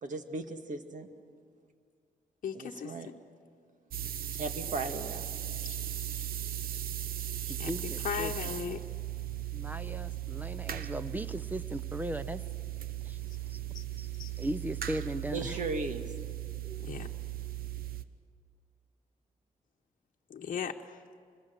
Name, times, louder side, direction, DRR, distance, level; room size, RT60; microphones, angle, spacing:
voice 1, 0.0-1.1 2.5-3.1 4.3-5.4 15.3-16.1 16.6-16.9, right 3 dB, 60° right, 6 dB, 1.9 m, -37 dB
voice 2, 2.4-2.9 5.6-5.8 7.5-8.8 13.7-13.8 14.2-14.3 16.8-17.1 20.3-21.0, left 7 dB, 60° left, 2 dB, 1.0 m, -37 dB
sound 1, 3.9-18.0, right 12 dB, 85° right, 0.8 m, -37 dB
voice 3, 7.5-8.3 9.5-12.4 13.0-13.2 13.5-13.6 14.0-14.1 14.4-15.6, right 1 dB, 10° right, 14 dB, 0.7 m, -37 dB
26.0 x 21.5 x 6.8 m, 2.3 s
cardioid pair, 95°, 15 cm